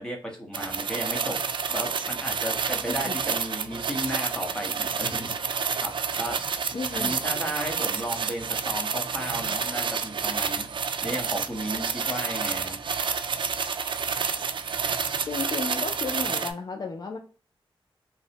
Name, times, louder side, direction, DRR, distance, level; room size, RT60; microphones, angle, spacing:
voice 1, 0.0-1.4 1.7-5.9 6.2-6.4 6.9-10.7 11.0-12.8, equal, 10° left, 0 dB, 1.0 m, -34 dB
sound 1, 0.5-16.5, right 6 dB, 60° right, 0.4 m, -29 dB
voice 2, 6.7-7.2 15.3-17.2, left 4 dB, 45° left, 4 dB, 0.4 m, -33 dB
3.0 x 2.0 x 2.8 m, 0.40 s
wide cardioid pair, 105°, 9 cm